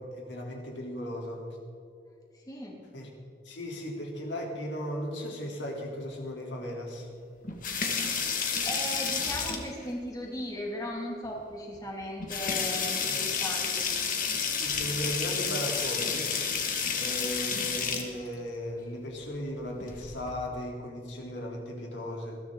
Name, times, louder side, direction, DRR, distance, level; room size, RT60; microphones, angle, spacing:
voice 1, 0.0-1.4 2.9-3.1 3.4-7.1 13.0-13.2 14.6-16.3 16.9-22.4, equal, 85° left, -1 dB, 3.4 m, -36 dB
voice 2, 2.3-2.8 8.0-13.9, left 1 dB, 20° left, -1 dB, 2.5 m, -37 dB
sound 1, 7.4-9.9 11.2-11.3 11.7-11.8 12.2-18.1 19.7-20.3, left 6 dB, 50° left, 2.0 m, -30 dB
21.0 x 14.0 x 3.9 m, 2.5 s
head